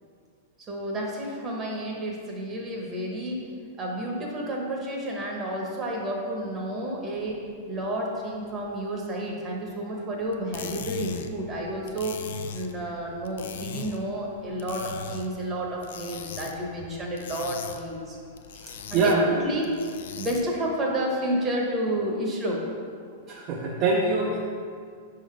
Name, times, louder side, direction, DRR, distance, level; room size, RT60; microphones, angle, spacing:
voice 1, 0.7-3.4 3.8-7.4 7.7-12.2 12.5-18.2 18.9-19.7 20.2-22.6, right 1 dB, 25° right, -1 dB, 1.0 m, -30 dB
sound 1, 10.3-20.7, left 7 dB, 80° left, 0.4 m, -40 dB
voice 2, 18.9-19.2 23.3-24.4, right 3 dB, 40° right, -3 dB, 0.6 m, -23 dB
5.0 x 3.8 x 4.9 m, 2.2 s
hypercardioid pair, 140°, 0 cm